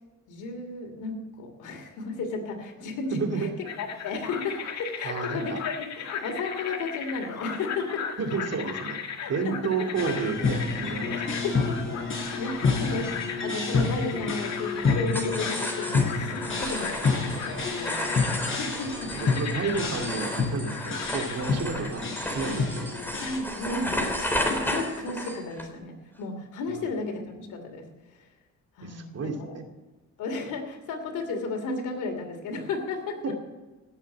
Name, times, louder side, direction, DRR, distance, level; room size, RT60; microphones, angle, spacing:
voice 1, 0.3-3.5 3.8-8.2 9.2-10.2 11.1-18.2 18.6-19.1 23.2-27.8 28.8-29.6 30.2-33.2, left 3 dB, 85° left, 4 dB, 2.9 m, -34 dB
voice 2, 3.1-3.5 5.0-5.6 8.2-9.0 9.3-11.4 18.8-18.9 19.1-22.9 26.7-26.8 28.8-29.6, right 4 dB, 55° right, 4 dB, 2.4 m, -31 dB
sound 1, 3.6-21.9, left 7 dB, 60° left, 1.7 m, -37 dB
sound 2, 9.9-23.4, left 4 dB, 40° left, 6.0 m, -29 dB
sound 3, 15.1-25.7, left 1 dB, 5° left, 3.3 m, -33 dB
17.0 x 7.3 x 8.4 m, 1.2 s
cardioid pair, 90°, 30 cm